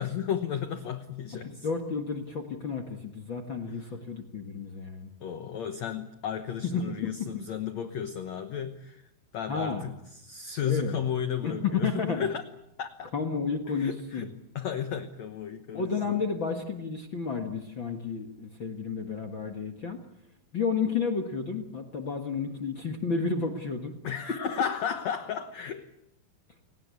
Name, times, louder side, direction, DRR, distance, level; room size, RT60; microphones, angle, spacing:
voice 1, 0.0-1.7 3.8-3.9 5.2-9.0 9.3-12.4 12.8-13.1 13.7-14.3 14.5-16.2 24.0-25.9, left 8 dB, 70° left, 9 dB, 1.6 m, -33 dB
voice 2, 1.4-5.1 6.6-7.4 9.5-9.9 10.6-11.0 11.4-12.3 13.1-14.3 15.7-20.0 20.5-23.9, left 5 dB, 50° left, 8 dB, 1.5 m, -31 dB
30.0 x 18.5 x 8.4 m, 0.79 s
omnidirectional pair, 4.8 m